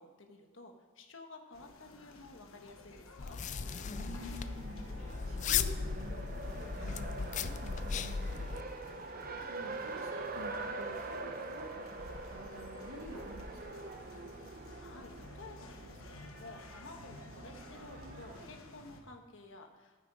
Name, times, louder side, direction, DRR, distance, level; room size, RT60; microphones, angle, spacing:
voice 1, 0.0-3.4 14.8-20.0, left 2 dB, 60° left, 4 dB, 1.4 m, -53 dB
sound 1, 1.5-19.0, left 2 dB, 75° left, 1.4 m, -54 dB
sound 2, 3.2-8.6, left 6 dB, 35° left, 0.4 m, -36 dB
Race car auto racing, 3.5-18.5, right 3 dB, 40° right, 0.8 m, -45 dB
voice 2, 3.9-8.5 9.5-14.0, right 1 dB, 85° right, 2 dB, 1.8 m, -49 dB
11.5 x 9.0 x 4.9 m, 1.5 s
head